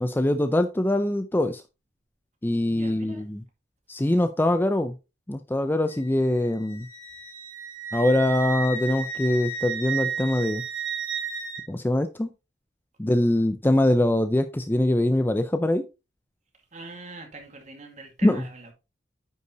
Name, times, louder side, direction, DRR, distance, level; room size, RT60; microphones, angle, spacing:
voice 1, 0.0-1.6 2.4-3.4 3.9-5.0 5.3-6.9 7.9-10.6 11.7-12.3 13.0-15.9 18.2-18.4, left 1 dB, 10° left, 0.4 m, -23 dB
voice 2, 2.7-3.3 16.7-18.7, right 2 dB, 40° right, 2.1 m, -43 dB
Wind instrument woodwind instrument, 5.9-11.6, right 5 dB, 70° right, 3.7 m, -33 dB
9.4 x 5.5 x 3.0 m
head